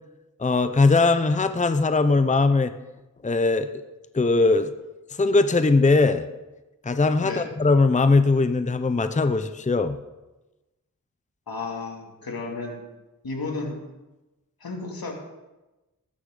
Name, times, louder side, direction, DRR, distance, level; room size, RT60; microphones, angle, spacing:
voice 1, 0.4-2.7 3.2-3.7 4.1-4.7 5.2-6.3 6.8-10.0, left 3 dB, 20° left, 10 dB, 0.7 m, -20 dB
voice 2, 11.5-12.9 13.2-13.8 14.6-15.1, left 3 dB, 85° left, 1 dB, 2.6 m, -32 dB
19.0 x 9.9 x 3.9 m, 1.1 s
wide cardioid pair, 55°, 35 cm